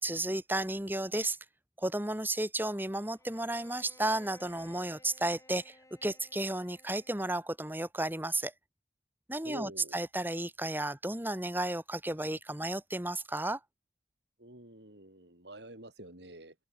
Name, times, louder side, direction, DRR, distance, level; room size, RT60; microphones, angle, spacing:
voice 1, 0.0-1.4 1.8-5.8 6.0-8.5 9.3-13.6, right 1 dB, 10° right, 2.1 m, -33 dB
Bowed string instrument, 3.2-7.6, left 1 dB, 15° left, 4.1 m, -60 dB
voice 2, 9.4-10.0 14.4-16.6, right 1 dB, 70° right, 5.3 m, -48 dB
head